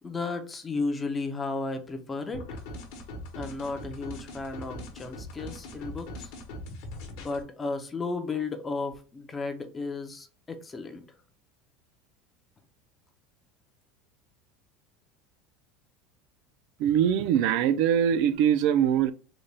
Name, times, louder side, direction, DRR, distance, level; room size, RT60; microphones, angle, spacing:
voice 1, 0.0-2.6 3.3-6.3 7.2-11.0, left 3 dB, 15° left, 0.4 m, -34 dB
sound 1, 2.3-7.4, left 1 dB, 55° left, 0.9 m, -41 dB
voice 2, 16.8-19.1, right 9 dB, 50° right, 0.3 m, -22 dB
3.8 x 2.2 x 3.2 m
cardioid pair, 175°, 0 cm